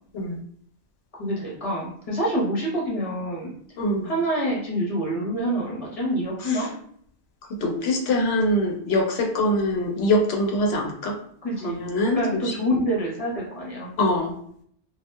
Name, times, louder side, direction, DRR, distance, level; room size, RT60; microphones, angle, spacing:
voice 1, 1.2-3.5 4.0-6.7 11.4-11.8 12.1-13.9, equal, 35° left, -5 dB, 1.0 m, -26 dB
voice 2, 7.6-11.1 11.6-12.5 14.0-14.3, left 1 dB, 75° left, 2 dB, 0.8 m, -23 dB
2.7 x 2.3 x 2.2 m, 0.63 s
omnidirectional pair, 1.1 m